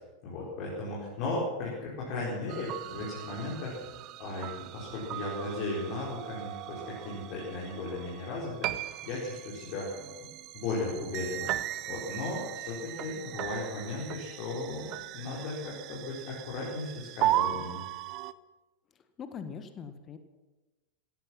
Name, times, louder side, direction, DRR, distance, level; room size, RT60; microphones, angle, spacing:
voice 1, 0.2-3.8 4.2-10.0 10.5-11.5 11.9-17.8, left 2 dB, 45° left, -5 dB, 4.9 m, -36 dB
sound 1, 2.5-18.3, right 14 dB, 40° right, 0.6 m, -37 dB
voice 2, 19.2-20.2, left 6 dB, 25° left, 9 dB, 1.5 m, -41 dB
17.0 x 14.0 x 5.9 m, 1.1 s
figure-of-eight pair, 90°, 0 cm